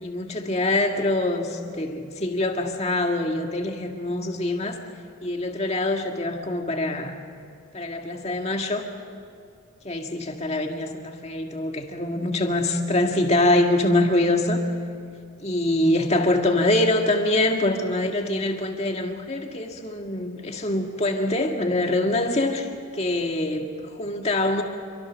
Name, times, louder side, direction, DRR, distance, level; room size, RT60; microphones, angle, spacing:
voice 1, 0.0-4.8 5.2-7.2 7.7-8.9 9.8-14.6 15.4-24.6, left 1 dB, 30° left, 3 dB, 1.9 m, -24 dB
27.5 x 24.0 x 6.3 m, 2.3 s
head